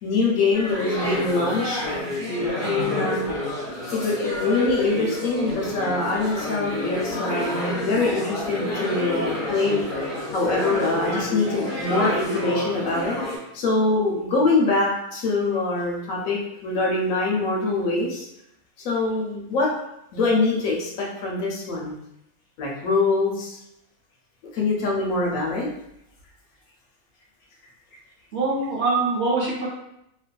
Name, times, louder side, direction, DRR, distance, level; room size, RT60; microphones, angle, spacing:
voice 1, 0.0-1.8 2.6-3.3 3.9-9.8 10.3-13.2 13.5-18.3 18.8-19.7 20.1-21.9 22.6-23.6 24.5-25.7, left 3 dB, 70° left, -2 dB, 1.0 m, -24 dB
sound 1, 0.5-13.4, left 1 dB, 45° left, 0.9 m, -28 dB
voice 2, 2.6-3.0 28.3-29.7, right 3 dB, 55° right, -6 dB, 0.9 m, -24 dB
2.7 x 2.4 x 2.2 m, 0.80 s
omnidirectional pair, 1.5 m